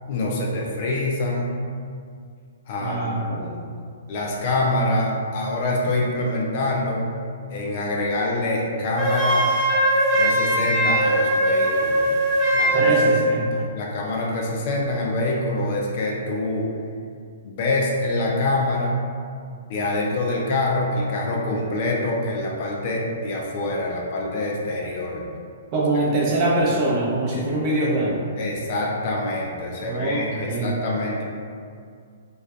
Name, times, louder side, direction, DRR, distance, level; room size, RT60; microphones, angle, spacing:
voice 1, 0.1-1.6 2.7-3.6 4.1-7.0 7.5-9.4 10.1-12.1 12.5-13.1 13.7-16.7 17.4-19.0 19.7-25.2 27.3-27.4 28.4-31.2, left 2 dB, 50° left, -2 dB, 0.4 m, -25 dB
voice 2, 2.8-3.5 12.7-13.7 25.7-28.2 29.8-30.7, right 2 dB, 40° right, -5 dB, 0.7 m, -23 dB
Wind instrument woodwind instrument, 9.0-13.2, right 1 dB, ahead, 0.6 m, -20 dB
2.5 x 2.3 x 2.2 m, 2.2 s
hypercardioid pair, 130°, 0 cm